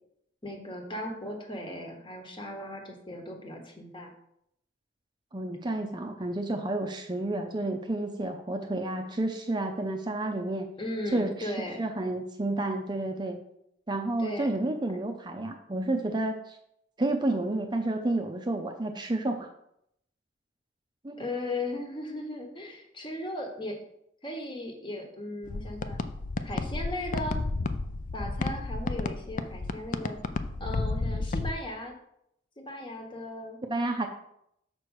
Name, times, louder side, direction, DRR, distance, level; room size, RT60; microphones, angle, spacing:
voice 1, 0.4-4.1 10.8-11.8 14.2-14.5 21.2-23.8 24.2-26.0 26.4-27.4 28.1-30.2 30.6-31.9 32.6-33.6, left 1 dB, 25° left, 2 dB, 1.3 m, -37 dB
voice 2, 5.3-10.7 11.1-11.5 11.8-13.4 13.9-16.6 17.0-19.5 21.0-21.2 33.6-34.1, right 2 dB, 25° right, 4 dB, 0.6 m, -30 dB
sound 1, 25.4-31.5, left 3 dB, 45° left, 0.4 m, -32 dB
6.0 x 4.6 x 6.4 m, 0.76 s
head